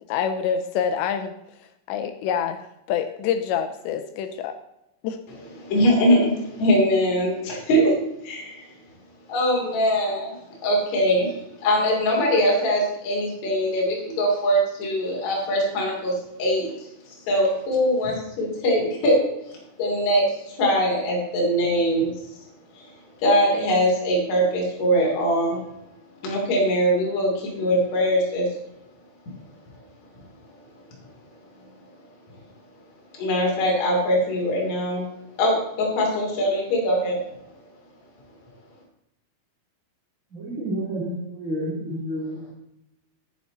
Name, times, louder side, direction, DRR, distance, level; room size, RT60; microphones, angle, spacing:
voice 1, 0.1-1.3 1.9-4.6 5.0-5.2, left 8 dB, 85° left, 7 dB, 2.6 m, -26 dB
voice 2, 5.6-8.0 8.2-8.7 9.3-10.4 10.6-16.9 17.3-22.1 22.8-22.9 23.2-25.6 26.2-28.5 33.1-35.1 35.4-37.2, equal, 40° left, -3 dB, 3.6 m, -22 dB
voice 3, 40.3-42.5, right 1 dB, 20° right, -4 dB, 2.0 m, -30 dB
11.0 x 9.9 x 4.1 m, 0.84 s
omnidirectional pair, 5.6 m